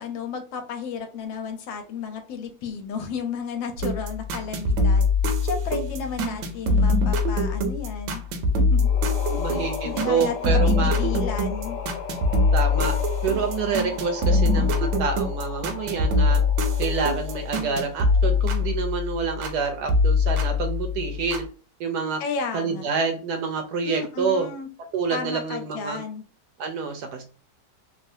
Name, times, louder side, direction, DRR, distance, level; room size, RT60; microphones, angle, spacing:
voice 1, 0.0-8.2 8.6-8.9 9.3-11.8 22.2-22.9 23.8-24.7 25.1-26.2, left 6 dB, 85° left, 6 dB, 1.4 m, -33 dB
sound 1, 3.8-19.6 19.9-21.5, left 3 dB, 85° right, 1.3 m, -23 dB
sound 2, 8.8-18.5, left 5 dB, 65° left, 1.2 m, -36 dB
voice 2, 9.4-11.0 12.5-13.0 13.2-16.4 16.8-21.4 21.8-22.2 22.5-24.5 24.9-26.0 26.6-27.2, right 5 dB, 70° right, 4 dB, 1.0 m, -27 dB
3.3 x 2.4 x 2.6 m, 0.38 s
omnidirectional pair, 2.0 m